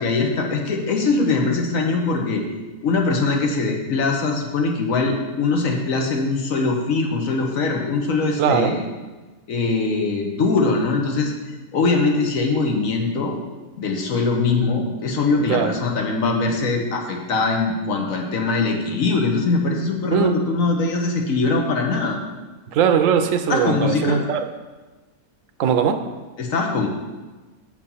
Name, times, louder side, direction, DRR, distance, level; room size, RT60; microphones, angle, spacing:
voice 1, 0.0-2.4 2.8-8.8 9.5-11.3 11.7-13.4 13.8-22.2 23.5-24.2 26.4-26.9, left 3 dB, 65° left, 2 dB, 1.4 m, -22 dB
voice 2, 8.4-8.8 15.5-15.7 20.1-20.4 22.7-24.5 25.6-26.0, right 7 dB, 65° right, 7 dB, 1.0 m, -20 dB
7.2 x 5.0 x 5.5 m, 1.2 s
omnidirectional pair, 1.5 m